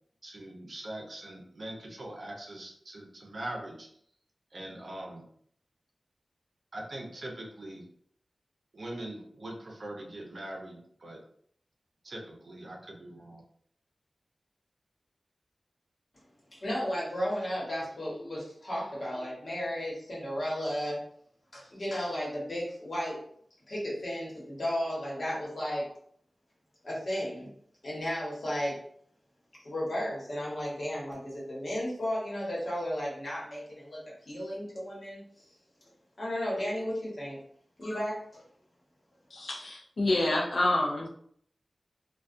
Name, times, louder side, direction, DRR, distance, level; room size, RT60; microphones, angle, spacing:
voice 1, 0.2-3.9 4.5-5.2 6.7-7.8 8.7-11.2 12.0-13.4, right 1 dB, 65° right, 0 dB, 0.6 m, -42 dB
voice 2, 16.5-21.0 21.5-23.2 23.7-25.9 26.8-27.5 27.8-28.8 29.6-35.2 36.2-37.4 37.8-38.4, equal, 55° left, -6 dB, 1.1 m, -34 dB
voice 3, 39.3-41.1, left 2 dB, 85° left, -1 dB, 0.4 m, -28 dB
2.3 x 2.2 x 2.5 m, 0.64 s
wide cardioid pair, 85°, 0 cm